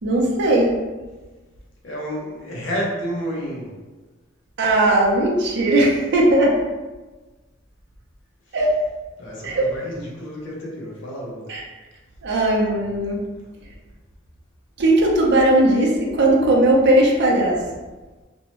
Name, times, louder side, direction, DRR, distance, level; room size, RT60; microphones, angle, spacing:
voice 1, 0.0-0.8 4.6-6.6 8.5-8.7 9.4-9.7 11.5-11.6 12.2-13.2 14.8-17.6, right 1 dB, 60° right, -2 dB, 0.5 m, -18 dB
voice 2, 1.8-3.8 9.2-11.5, equal, 65° left, -3 dB, 0.7 m, -30 dB
2.6 x 2.1 x 2.9 m, 1.2 s
head